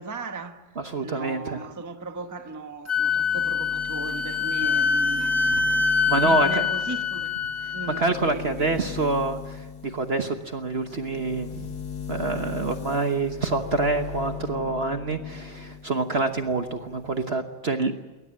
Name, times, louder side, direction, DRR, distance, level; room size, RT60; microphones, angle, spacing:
voice 1, 0.0-0.6 1.0-5.6 6.2-7.3 7.7-8.8, right 3 dB, 10° right, 1.0 m, -37 dB
voice 2, 0.8-1.6 5.6-6.7 8.0-11.7 12.1-17.9, right 3 dB, 40° right, 1.2 m, -27 dB
Wind instrument woodwind instrument, 2.9-8.0, left 5 dB, 10° left, 1.1 m, -24 dB
sound 1, 3.0-15.9 16.2-17.3, left 7 dB, 65° left, 1.9 m, -39 dB
21.0 x 19.0 x 8.9 m
omnidirectional pair, 1.9 m